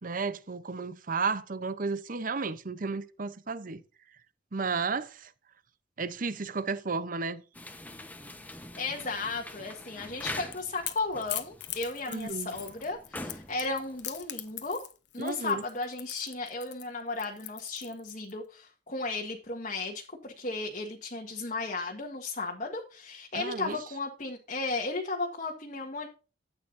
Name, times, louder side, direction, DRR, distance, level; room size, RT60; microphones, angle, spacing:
voice 1, 0.0-3.8 4.5-5.3 6.0-7.4 12.1-12.6 15.2-15.6 23.3-23.8, right 4 dB, 45° right, 0.8 m, -33 dB
sound 1, 7.5-14.8, left 1 dB, 10° left, 1.1 m, -44 dB
voice 2, 8.8-14.8 15.1-26.1, left 3 dB, 40° left, 1.6 m, -35 dB
Crackle / Crack, 10.1-18.3, left 14 dB, 65° left, 1.2 m, -41 dB
13.5 x 8.8 x 2.7 m
head